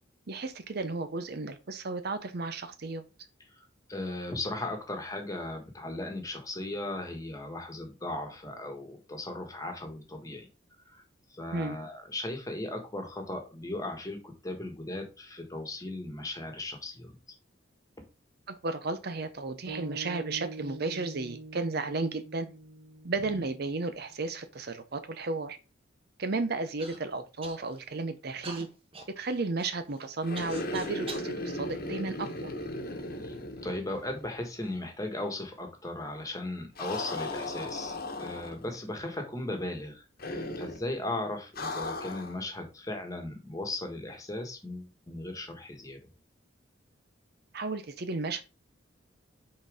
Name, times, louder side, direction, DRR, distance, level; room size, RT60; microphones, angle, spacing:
voice 1, 0.3-3.0 11.5-11.8 18.5-22.5 23.0-25.6 26.2-28.7 29.2-32.5 47.5-48.4, right 3 dB, 50° right, 10 dB, 0.6 m, -33 dB
voice 2, 3.5-10.5 10.9-11.0 11.3-17.2 23.3-23.4 33.2-33.3 33.6-46.0, left 2 dB, 15° left, 4 dB, 1.4 m, -37 dB
sound 1, 19.7-24.0, right 2 dB, 75° right, 2.0 m, -44 dB
Human voice / Cough, 26.8-27.0 27.4-27.9 28.4-31.3 32.0-32.9 33.6-33.7 34.4-34.8, right 3 dB, 30° right, 1.2 m, -46 dB
sound 2, 30.2-34.4 34.6-34.7 36.8-38.8 40.2-40.9 41.6-42.4, left 2 dB, 50° left, 1.2 m, -37 dB
5.8 x 4.2 x 4.9 m, 0.31 s
head